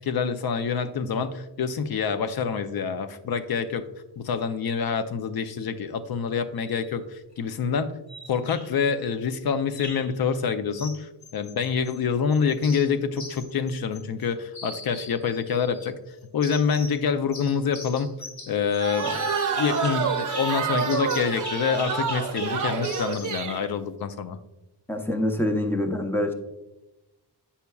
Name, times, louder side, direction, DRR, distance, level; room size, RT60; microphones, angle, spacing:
voice 1, 0.0-3.9 4.2-7.9 8.3-15.9 16.3-18.1 18.5-19.2 19.6-24.4, left 6 dB, 65° left, 9 dB, 0.6 m, -26 dB
sound 1, 6.6-6.9 8.1-8.9 9.7-10.2 10.8-12.0 12.3-14.3 14.5-15.9 16.4-17.0 17.3-23.4, left 2 dB, 45° left, 1.3 m, -41 dB
sound 2, 18.8-23.6, right 5 dB, 50° right, 0.6 m, -28 dB
voice 2, 24.9-26.3, left 1 dB, 5° left, 4 dB, 0.6 m, -25 dB
8.2 x 5.7 x 2.3 m, 0.98 s
wide cardioid pair, 120°, 40 cm